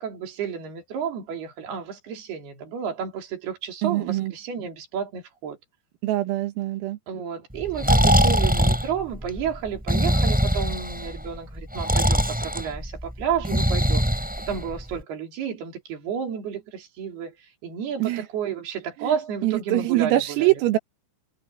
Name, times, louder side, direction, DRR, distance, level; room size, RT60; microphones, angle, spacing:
voice 1, 0.0-5.6 7.1-14.1 14.4-17.3 17.6-20.5, right 7 dB, 50° right, 5.4 m, -31 dB
voice 2, 3.8-4.3 6.0-7.0 18.0-18.3 19.0-19.2 19.4-20.8, right 16 dB, 85° right, 4.2 m, -23 dB
Breathing, 7.6-15.0, equal, ahead, 6.2 m, -22 dB
omnidirectional pair, 6.0 m